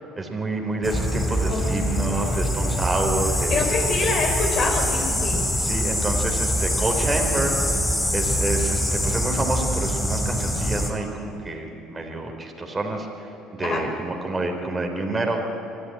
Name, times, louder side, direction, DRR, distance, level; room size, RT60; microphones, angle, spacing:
voice 1, 0.2-3.6 5.6-7.6 8.1-15.4, right 2 dB, 20° right, 2 dB, 3.5 m, -28 dB
sound 1, 0.8-10.9, equal, 10° left, 3.4 m, -24 dB
voice 2, 1.4-2.4 3.5-5.4 13.6-13.8, left 3 dB, 45° left, 3 dB, 5.0 m, -26 dB
24.5 x 13.5 x 9.9 m, 2.7 s
hypercardioid pair, 65°, 0 cm